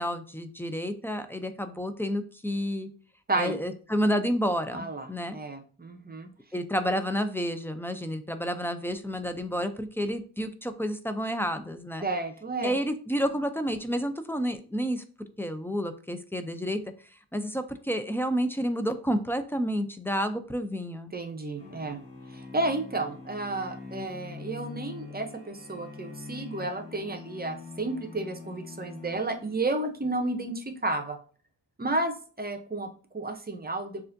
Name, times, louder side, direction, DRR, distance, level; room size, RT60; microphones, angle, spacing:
voice 1, 0.0-2.9 3.4-5.4 6.5-12.1 12.6-15.0 15.4-16.8 17.1-21.1, equal, 5° left, 8 dB, 0.3 m, -30 dB
voice 2, 3.3-3.6 4.7-5.1 5.3-6.3 12.0-12.7 21.1-22.0 22.3-31.2 31.8-34.0, right 2 dB, 20° right, 5 dB, 0.7 m, -32 dB
sound 1, 21.6-29.9, left 4 dB, 30° left, 1.8 m, -44 dB
6.6 x 2.5 x 2.6 m, 0.41 s
wide cardioid pair, 100°, 43 cm